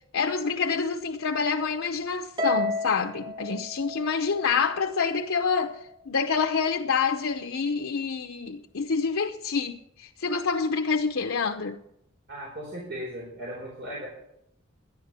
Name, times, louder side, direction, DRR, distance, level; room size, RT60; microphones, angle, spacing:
voice 1, 0.1-5.8 6.1-11.8, left 5 dB, 85° left, 0.8 m, -27 dB
Harp, 2.4-4.8, left 2 dB, 25° right, 0.9 m, -31 dB
voice 2, 12.3-14.1, equal, 55° right, 4.0 m, -37 dB
11.5 x 10.5 x 6.9 m
head